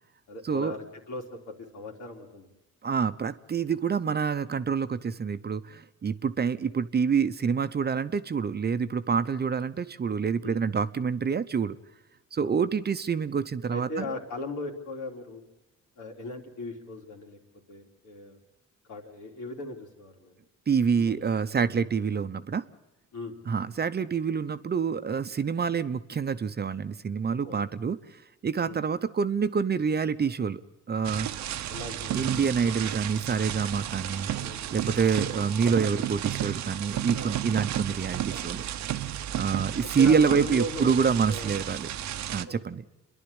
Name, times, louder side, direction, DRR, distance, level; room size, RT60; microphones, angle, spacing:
voice 1, 0.3-2.5 10.4-10.6 12.4-12.6 13.7-15.4 16.0-17.4 17.7-18.4 18.9-20.3 20.9-21.5 23.1-23.4 27.4-27.6 28.6-28.8 31.3-31.4 31.7-32.3 34.4-34.6 37.2-37.4 39.3-39.4 39.9-41.6 42.4-42.6, left 2 dB, 80° left, 1 dB, 3.6 m, -38 dB
voice 2, 2.8-11.8 12.3-13.9 20.7-22.6 23.5-28.0 28.4-30.6 30.9-31.3 32.1-34.3 34.7-38.6 39.4-41.9 42.3-42.8, right 6 dB, 35° right, 12 dB, 0.8 m, -27 dB
sound 1, 31.0-42.4, right 11 dB, 70° right, 0.9 m, -33 dB
29.0 x 11.0 x 8.8 m, 0.99 s
cardioid pair, 90°, 30 cm